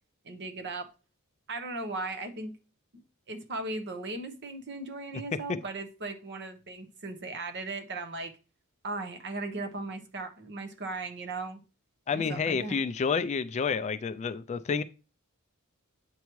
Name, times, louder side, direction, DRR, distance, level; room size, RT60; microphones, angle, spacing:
voice 1, 0.2-0.9 1.5-2.5 3.3-8.3 8.8-11.6 12.1-12.8, right 2 dB, 50° right, 1.0 m, -37 dB
voice 2, 12.1-14.8, left 5 dB, 30° left, 0.3 m, -29 dB
8.2 x 4.6 x 3.1 m
head